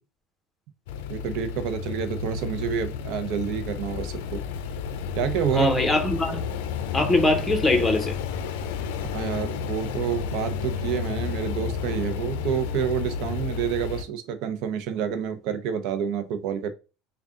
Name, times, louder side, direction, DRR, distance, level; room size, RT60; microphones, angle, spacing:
sound 1, 0.9-14.0, left 6 dB, 85° left, 0.4 m, -31 dB
voice 1, 1.1-4.4 5.1-5.7 9.0-16.7, right 8 dB, 65° right, 0.6 m, -28 dB
voice 2, 5.5-6.4 6.9-8.1, left 2 dB, 10° left, 1.1 m, -22 dB
3.6 x 2.3 x 3.7 m
supercardioid pair, 115°, 0 cm